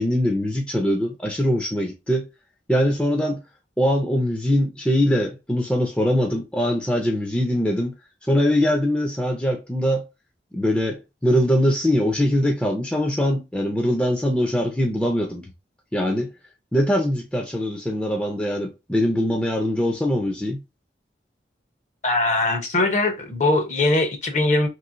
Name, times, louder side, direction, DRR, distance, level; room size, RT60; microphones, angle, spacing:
voice 1, 0.0-2.3 2.7-3.4 3.8-7.9 8.2-10.0 10.5-15.5 15.9-16.3 16.7-20.6, equal, 5° left, 0.5 m, -22 dB
voice 2, 22.0-24.7, left 2 dB, 40° left, 0.7 m, -21 dB
3.0 x 2.9 x 2.4 m
head